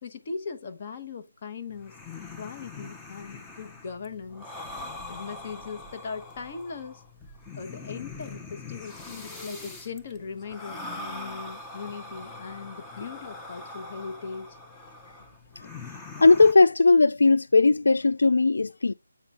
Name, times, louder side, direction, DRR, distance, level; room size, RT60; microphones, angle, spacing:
voice 1, 0.0-4.5 5.1-7.0 7.6-14.6, left 5 dB, 35° left, 1.1 m, -39 dB
sound 1, 1.7-16.5, left 2 dB, 10° left, 0.7 m, -42 dB
voice 2, 16.2-18.9, left 3 dB, 70° left, 0.3 m, -18 dB
8.1 x 4.0 x 3.6 m
figure-of-eight pair, 160°, 0 cm